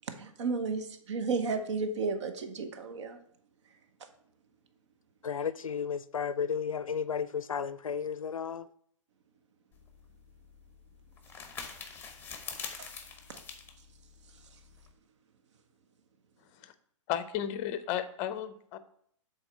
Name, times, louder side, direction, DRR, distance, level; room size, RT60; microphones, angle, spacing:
voice 1, 0.0-3.2 4.0-4.1 12.8-12.9 13.3-13.4 14.3-14.6, right 4 dB, 60° right, 0.9 m, -33 dB
voice 2, 5.2-8.7, left 7 dB, 90° left, 0.4 m, -33 dB
sound 1, 9.7-14.9, left 5 dB, 10° left, 0.9 m, -45 dB
voice 3, 17.1-18.8, left 10 dB, 30° left, 0.6 m, -34 dB
7.0 x 4.0 x 5.2 m
hypercardioid pair, 125°, 17 cm